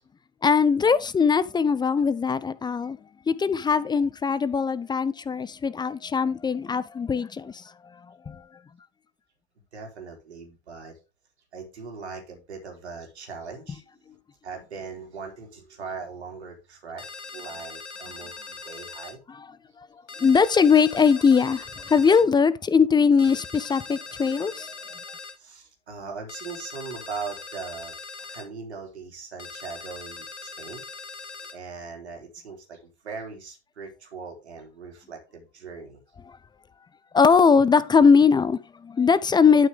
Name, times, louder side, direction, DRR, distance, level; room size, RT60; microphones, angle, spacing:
voice 1, 0.4-3.0 3.3-7.6 8.3-8.4 20.2-24.7 37.1-39.7, left 5 dB, 15° left, 0.5 m, -20 dB
voice 2, 9.7-10.9 11.5-13.8 14.4-17.0 17.3-19.2 25.4-27.9 28.3-30.8 31.5-36.0, right 5 dB, 75° right, 3.4 m, -39 dB
sound 1, 17.0-19.2 20.1-22.3 23.2-25.4 26.3-28.5 29.4-31.6, left 4 dB, 90° left, 0.8 m, -41 dB
11.5 x 6.0 x 3.7 m
figure-of-eight pair, 80°, 33 cm